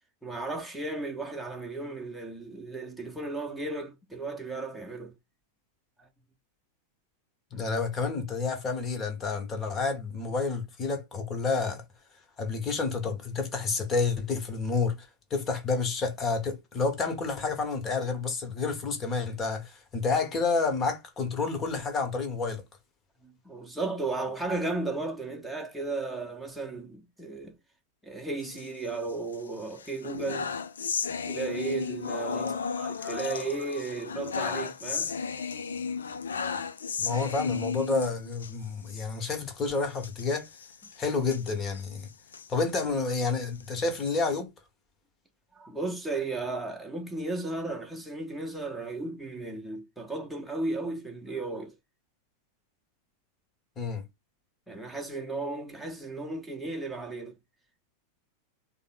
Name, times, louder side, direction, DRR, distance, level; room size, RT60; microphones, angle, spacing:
voice 1, 0.2-5.1 6.0-6.1 23.2-27.5 28.0-30.5 31.2-35.1 45.5-51.7 54.7-57.3, right 3 dB, ahead, 1.0 m, -35 dB
voice 2, 7.5-11.8 12.4-22.6 37.0-40.5 41.0-42.1 42.5-44.5 53.8-54.0, left 4 dB, 25° left, 1.2 m, -29 dB
sound 1, 28.4-29.4 29.7-38.5 38.9-39.0 39.3-39.4 40.0-42.5 43.0-44.4, left 6 dB, 70° left, 0.4 m, -34 dB
3.7 x 2.1 x 3.9 m
figure-of-eight pair, 90°, 0 cm